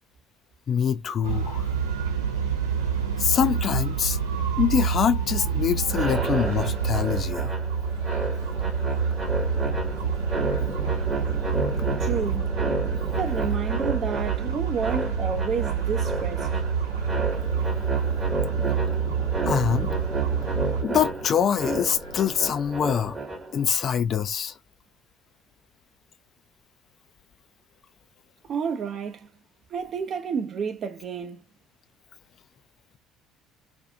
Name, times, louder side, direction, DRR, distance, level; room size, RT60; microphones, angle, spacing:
voice 1, 0.7-1.6 3.2-4.2 4.6-7.5 19.5-19.9 20.8-23.2 23.5-24.5, left 8 dB, 45° left, 0.3 m, -24 dB
sound 1, 1.2-20.8, right 6 dB, 80° right, 0.8 m, -27 dB
sound 2, 5.8-23.7, right 2 dB, 25° right, 1.0 m, -32 dB
sound 3, 7.8-23.0, left 1 dB, 85° left, 0.7 m, -42 dB
voice 2, 12.0-12.5 13.2-16.5 28.5-29.3 29.7-31.4, right 6 dB, 45° right, 0.6 m, -30 dB
2.5 x 2.4 x 2.6 m
figure-of-eight pair, 55°, 0 cm